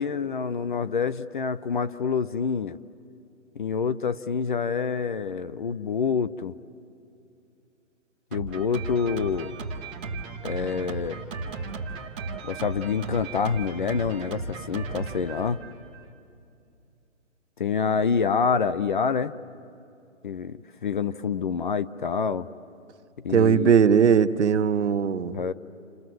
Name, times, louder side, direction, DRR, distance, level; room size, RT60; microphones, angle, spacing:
voice 1, 0.0-2.8 3.6-6.5 8.3-9.5 10.4-11.2 12.4-15.6 17.6-19.3 20.2-22.5 23.2-23.8 25.3-25.5, left 6 dB, 40° left, 13 dB, 0.6 m, -27 dB
Drum kit, 8.3-16.1, right 4 dB, 10° right, 0.6 m, -35 dB
voice 2, 23.3-25.4, right 7 dB, 60° right, 10 dB, 1.0 m, -19 dB
29.0 x 26.0 x 7.7 m, 2.6 s
hypercardioid pair, 155°, 39 cm